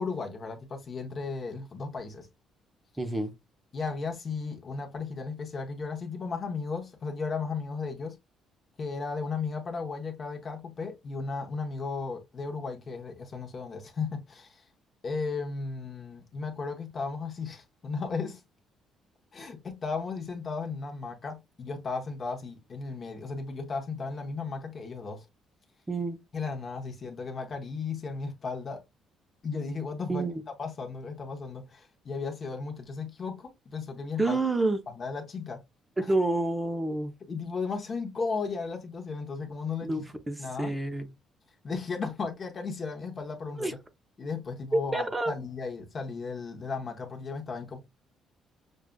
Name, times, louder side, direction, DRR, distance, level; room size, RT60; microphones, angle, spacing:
voice 1, 0.0-2.3 3.7-8.2 8.8-14.7 15.0-18.4 19.3-25.3 26.3-28.8 29.4-30.3 30.6-34.4 34.9-35.6 36.0-36.1 37.3-40.1 40.4-40.8 41.6-43.8 44.2-47.8, left 4 dB, 30° left, 0.8 m, -35 dB
voice 2, 3.0-3.3 25.9-26.2 30.1-30.4 34.2-34.8 36.1-37.1 39.8-41.1 43.6-43.7 44.7-45.3, right 2 dB, 10° right, 0.5 m, -28 dB
6.2 x 2.3 x 2.2 m
cardioid pair, 180°, 0 cm